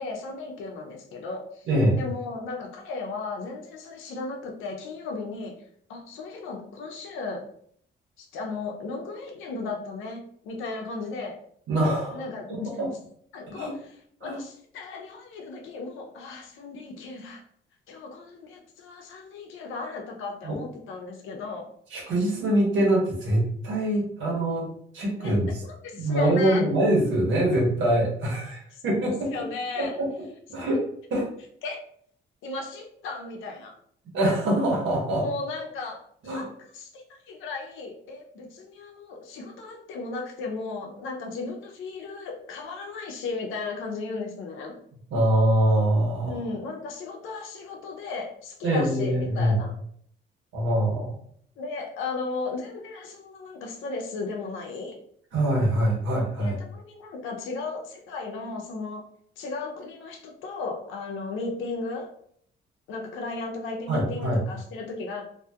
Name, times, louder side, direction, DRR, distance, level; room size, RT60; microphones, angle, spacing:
voice 1, 0.0-1.7 2.0-5.5 5.9-7.4 8.2-11.4 12.1-12.7 13.3-17.4 17.9-21.7 25.2-25.3 25.8-26.6 29.3-30.0 30.5-30.7 31.6-31.8 32.4-33.7 35.2-44.7 46.2-49.7 51.6-55.0 56.4-59.0 59.4-62.1 62.9-65.2, left 3 dB, 90° left, 2 dB, 0.6 m, -35 dB
voice 2, 1.7-2.0 11.7-12.9 13.5-13.7 14.2-14.4 20.4-20.6 21.9-25.6 25.9-29.3 29.8-30.1 30.5-30.8 31.1-31.3 34.1-35.2 36.2-36.5 45.1-46.4 48.6-49.5 50.5-51.1 55.3-56.5 63.9-64.4, right 1 dB, 75° right, -2 dB, 1.2 m, -24 dB
2.6 x 2.3 x 2.7 m, 0.65 s
cardioid pair, 90°, 20 cm